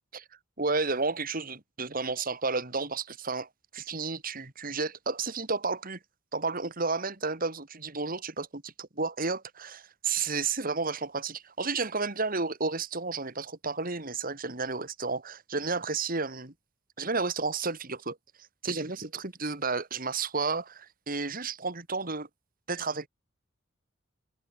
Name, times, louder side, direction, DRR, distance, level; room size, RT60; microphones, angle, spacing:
voice 1, 0.6-6.0 6.3-16.5 17.0-18.2 18.6-22.3 22.7-23.1, right 4 dB, 45° right, 3.0 m, -32 dB
head